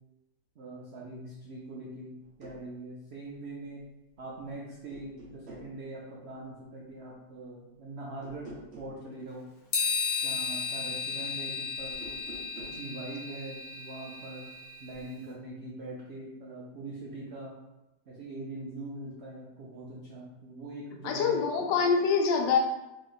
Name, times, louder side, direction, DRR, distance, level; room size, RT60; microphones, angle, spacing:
voice 1, 0.6-3.8 4.2-9.4 10.2-12.0 12.7-14.5 14.8-17.6 18.1-21.4, right 2 dB, 75° right, -4 dB, 0.6 m, -42 dB
sound 1, 2.2-2.6 4.2-4.5 4.9-5.7 8.2-9.0 11.9-12.8, right 1 dB, 45° right, 1.0 m, -47 dB
sound 2, 9.7-15.0, left 5 dB, 60° left, 1.2 m, -34 dB
voice 2, 21.0-22.6, left 5 dB, 80° left, 3 dB, 1.3 m, -25 dB
3.1 x 2.8 x 3.9 m, 0.98 s
omnidirectional pair, 1.9 m